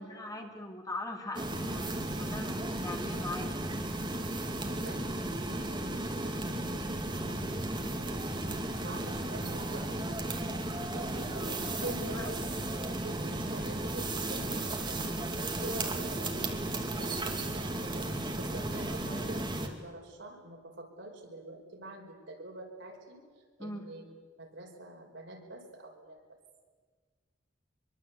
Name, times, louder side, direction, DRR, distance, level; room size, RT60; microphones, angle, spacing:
voice 1, 0.0-3.5 10.9-11.0 11.8-12.3 23.6-23.8, left 2 dB, 20° left, 3 dB, 2.6 m, -41 dB
sound 1, 1.3-19.7, right 1 dB, 25° right, 2.5 m, -34 dB
voice 2, 4.7-10.5 10.9-12.4 13.0-15.0 15.4-24.1 24.4-26.4, right 2 dB, 70° right, 1 dB, 5.3 m, -46 dB
24.5 x 24.0 x 8.4 m, 1.5 s
head